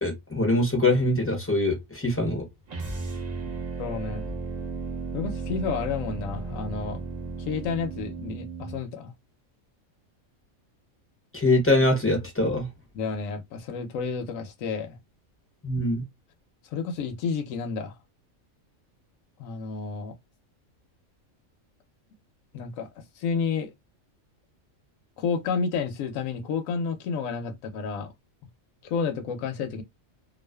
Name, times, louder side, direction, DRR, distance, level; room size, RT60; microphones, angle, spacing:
voice 1, 0.0-2.5 11.3-12.7 15.6-16.0, left 2 dB, 15° left, 0.5 m, -23 dB
sound 1, 2.7-8.8, right 3 dB, 40° right, 0.7 m, -34 dB
voice 2, 3.8-4.2 5.1-7.0 7.4-9.1 13.0-15.0 16.7-18.0 19.4-20.1 22.5-23.7 25.2-28.1 28.8-29.8, left 5 dB, 75° left, 1.0 m, -30 dB
2.4 x 2.4 x 2.2 m
omnidirectional pair, 1.4 m